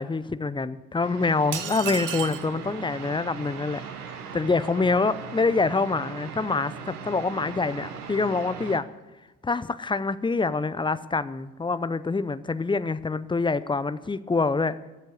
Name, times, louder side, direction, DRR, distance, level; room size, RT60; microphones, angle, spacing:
voice 1, 0.0-3.8 4.3-8.8 9.4-14.8, left 4 dB, 10° left, 14 dB, 0.6 m, -26 dB
sound 1, 1.0-8.8, right 7 dB, 90° right, 0.9 m, -39 dB
sound 2, 1.5-2.5, right 9 dB, 45° right, 1.1 m, -32 dB
13.5 x 7.6 x 8.4 m, 1.2 s
hypercardioid pair, 50°, 44 cm